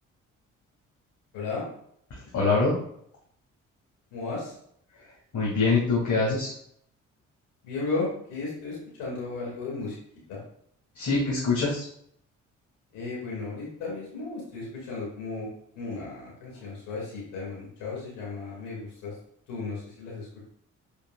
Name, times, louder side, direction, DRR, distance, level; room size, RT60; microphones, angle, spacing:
voice 1, 1.3-1.6 4.1-4.5 7.6-10.0 10.3-10.4 12.9-15.5 15.7-19.1 19.5-20.3, left 3 dB, 90° left, -4 dB, 2.3 m, -34 dB
voice 2, 2.1-2.7 5.3-6.5 10.9-11.9, left 3 dB, 60° left, -6 dB, 2.4 m, -24 dB
7.8 x 5.0 x 2.4 m, 0.67 s
supercardioid pair, 60°, 32 cm